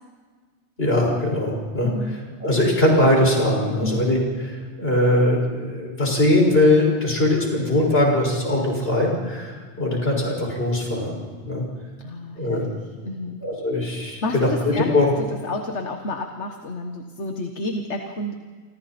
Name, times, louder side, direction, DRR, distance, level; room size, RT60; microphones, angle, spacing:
voice 1, 0.8-1.9 2.4-4.2 4.5-11.7 12.4-12.7 13.4-15.1, left 1 dB, 55° left, -1 dB, 6.3 m, -21 dB
voice 2, 1.8-2.2 3.8-4.1 12.0-13.4 14.2-18.3, left 2 dB, 80° left, 4 dB, 1.8 m, -30 dB
29.5 x 25.5 x 4.4 m, 1.5 s
omnidirectional pair, 1.2 m